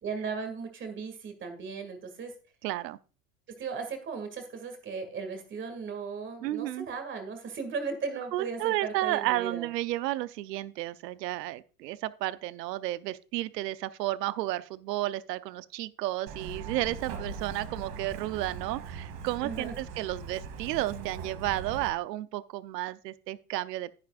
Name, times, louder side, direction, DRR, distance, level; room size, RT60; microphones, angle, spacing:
voice 1, 0.0-2.3 3.6-9.7 19.4-19.7, right 5 dB, 25° right, 2.2 m, -36 dB
voice 2, 2.6-3.0 6.4-6.9 8.3-24.0, right 16 dB, 90° right, 0.8 m, -32 dB
Truck, 16.3-21.9, right 5 dB, 50° right, 2.2 m, -40 dB
10.5 x 10.0 x 2.4 m
supercardioid pair, 145°, 47 cm